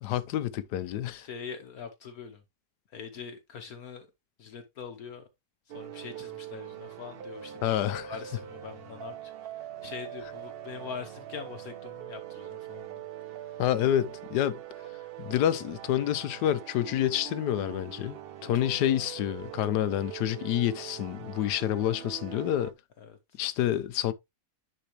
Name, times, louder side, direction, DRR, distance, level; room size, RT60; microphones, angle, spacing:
voice 1, 0.0-1.3 7.6-8.1 13.6-14.6 15.2-22.7 23.4-24.1, left 11 dB, 85° left, 1.2 m, -28 dB
voice 2, 1.1-2.4 2.9-4.1 4.4-5.3 5.7-13.6 18.4-18.7 23.0-23.4, left 6 dB, 65° left, 1.4 m, -43 dB
sound 1, 5.7-22.7, right 11 dB, 75° right, 0.5 m, -43 dB
10.0 x 4.3 x 3.0 m
omnidirectional pair, 1.7 m